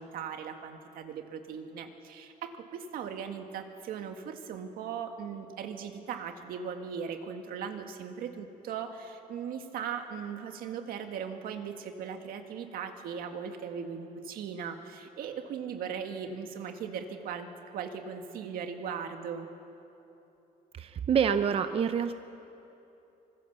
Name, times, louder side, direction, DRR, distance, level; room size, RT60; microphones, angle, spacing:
voice 1, 0.0-19.5, right 7 dB, 85° right, 5 dB, 1.9 m, -38 dB
voice 2, 20.8-22.2, right 7 dB, 40° right, 10 dB, 0.6 m, -27 dB
25.0 x 22.0 x 6.9 m, 2.9 s
cardioid pair, 145°, 15 cm